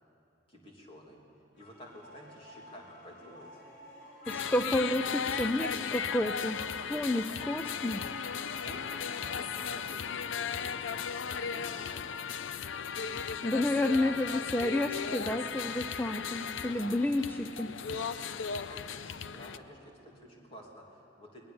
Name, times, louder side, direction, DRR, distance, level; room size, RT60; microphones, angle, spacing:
voice 1, 0.5-1.2 1.5-3.6 8.4-12.2 18.5-21.4, equal, 30° left, -1 dB, 3.1 m, -52 dB
sound 1, 1.5-12.2, equal, 65° left, 3.9 m, -54 dB
sound 2, 4.3-19.6, left 6 dB, 80° left, 0.6 m, -36 dB
voice 2, 4.3-8.0 13.4-17.7, left 1 dB, 10° left, 7 dB, 0.5 m, -30 dB
21.0 x 19.5 x 7.1 m, 2.7 s
head